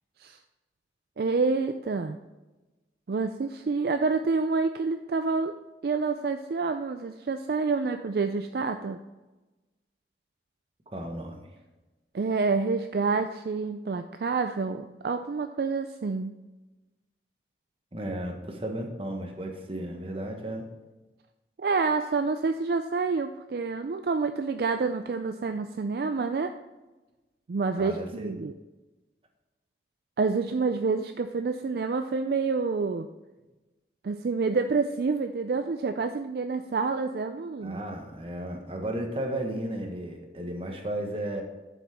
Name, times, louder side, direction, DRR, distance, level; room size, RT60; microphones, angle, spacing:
voice 1, 1.2-2.2 3.1-5.6 5.8-9.0 12.1-16.3 21.6-26.5 27.5-28.5 30.2-33.1 34.0-37.8, right 4 dB, 60° right, 8 dB, 0.4 m, -28 dB
voice 2, 10.9-11.5 17.9-20.7 27.8-28.3 37.6-41.4, right 1 dB, 30° right, 3 dB, 1.3 m, -34 dB
11.5 x 7.2 x 3.5 m, 1.1 s
head